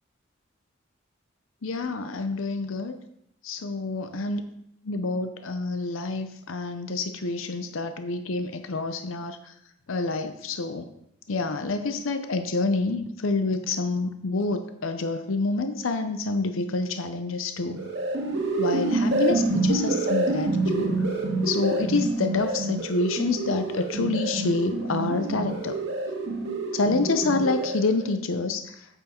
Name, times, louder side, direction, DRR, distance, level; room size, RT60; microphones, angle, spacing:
voice 1, 1.6-3.0 3.4-4.4 4.9-9.5 9.9-10.9 11.3-17.8 18.6-21.0 21.4-25.8 26.7-28.8, left 3 dB, 90° left, 8 dB, 0.7 m, -27 dB
sound 1, 17.6-28.1, right 2 dB, 60° right, 1.8 m, -27 dB
8.8 x 8.2 x 4.3 m, 0.77 s
head